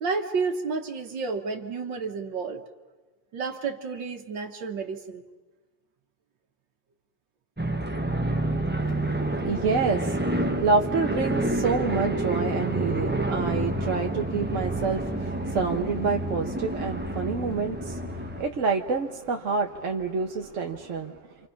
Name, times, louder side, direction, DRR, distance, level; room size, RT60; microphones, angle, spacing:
voice 1, 0.0-2.6 3.3-5.2, right 4 dB, 70° right, 3 dB, 1.9 m, -31 dB
sound 1, 7.6-18.4, right 1 dB, 10° right, 0.8 m, -28 dB
voice 2, 8.7-21.2, right 4 dB, 50° right, 3 dB, 1.1 m, -28 dB
29.0 x 26.5 x 5.7 m, 1.3 s
omnidirectional pair, 2.1 m